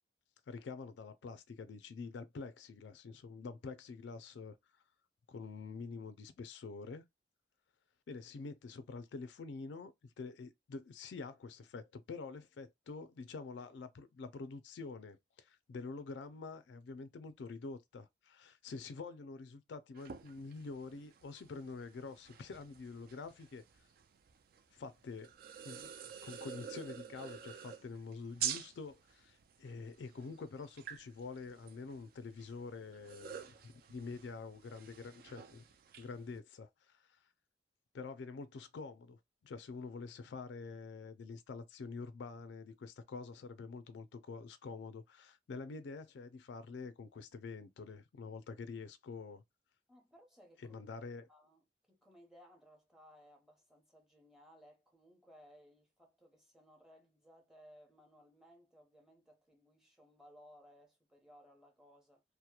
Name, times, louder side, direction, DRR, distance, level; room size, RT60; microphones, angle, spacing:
voice 1, 0.5-4.6 5.3-7.0 8.1-23.6 24.7-25.3 25.6-35.6 36.0-37.2 37.9-49.4 50.6-51.3, left 4 dB, 75° left, 0.4 m, -47 dB
sound 1, 19.9-36.4, right 8 dB, 55° right, 0.3 m, -48 dB
voice 2, 49.9-50.8 51.3-62.2, equal, 5° right, 0.8 m, -62 dB
2.8 x 2.1 x 2.3 m
head